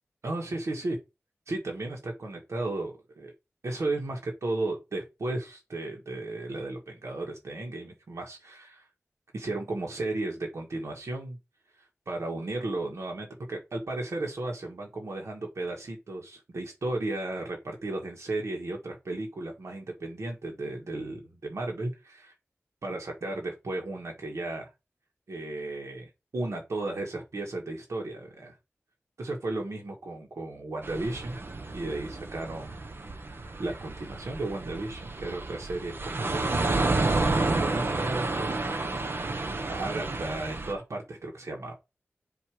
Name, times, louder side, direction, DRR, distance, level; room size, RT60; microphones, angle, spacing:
voice 1, 0.2-1.0 1.5-3.3 3.6-8.8 9.3-11.4 12.1-22.3 22.8-24.7 25.3-28.5 29.2-31.4 31.7-32.9 33.6-36.9 37.4-38.5 39.7-41.7, right 2 dB, 85° right, 1.7 m, -34 dB
sound 1, 30.8-40.7, right 2 dB, 50° right, 1.1 m, -30 dB
7.6 x 3.2 x 5.0 m
wide cardioid pair, 80°, 5 cm